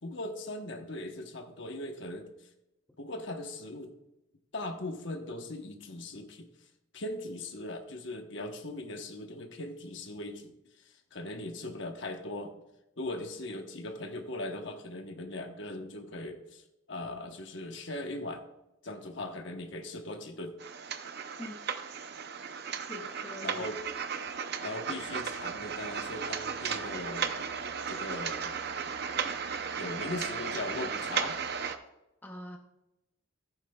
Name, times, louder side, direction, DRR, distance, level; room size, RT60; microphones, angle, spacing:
voice 1, 0.0-2.3 3.0-3.9 4.5-6.5 6.9-12.6 13.0-16.6 16.9-18.5 18.8-20.6 23.4-23.8 24.6-27.5 27.9-28.6 29.8-31.4, left 2 dB, 60° left, 5 dB, 1.1 m, -39 dB
sound 1, 20.6-31.8, right 6 dB, 50° right, 0.6 m, -35 dB
voice 2, 22.9-23.6 32.2-32.6, left 1 dB, 10° left, 2 dB, 0.7 m, -43 dB
14.5 x 9.1 x 2.3 m, 0.91 s
head